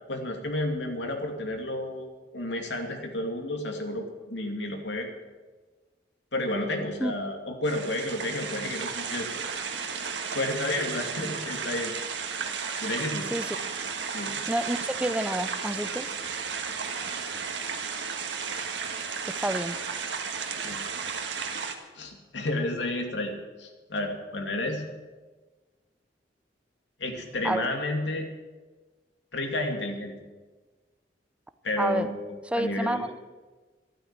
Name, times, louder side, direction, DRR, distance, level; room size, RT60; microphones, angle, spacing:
voice 1, 0.1-2.1 2.3-5.1 6.3-9.3 9.6-9.7 10.3-11.9 12.8-13.3 14.1-14.4 20.6-20.9 21.9-24.8 27.0-28.3 29.3-30.1 31.6-32.1 32.5-33.1, left 1 dB, 80° left, 3 dB, 2.6 m, -31 dB
sound 1, 7.6-21.7, right 6 dB, 85° right, 1.7 m, -33 dB
voice 2, 14.5-16.1 19.3-19.8 27.4-27.7 31.8-32.1 32.5-33.2, right 1 dB, 5° right, 11 dB, 0.7 m, -29 dB
13.5 x 12.5 x 7.6 m, 1.3 s
head